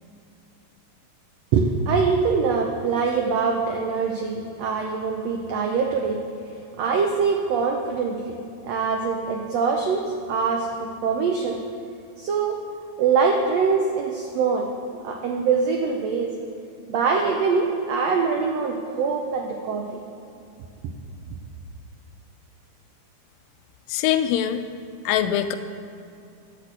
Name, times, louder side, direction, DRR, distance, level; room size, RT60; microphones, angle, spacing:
voice 1, 1.5-6.2 6.5-8.4 8.6-10.0 10.3-11.6 12.2-12.6 13.0-16.3 16.9-20.0, right 5 dB, 85° right, 1 dB, 1.4 m, -23 dB
voice 2, 23.9-24.6 25.1-25.6, left 10 dB, 85° left, 10 dB, 2.3 m, -22 dB
10.5 x 6.0 x 8.0 m, 2.6 s
omnidirectional pair, 4.0 m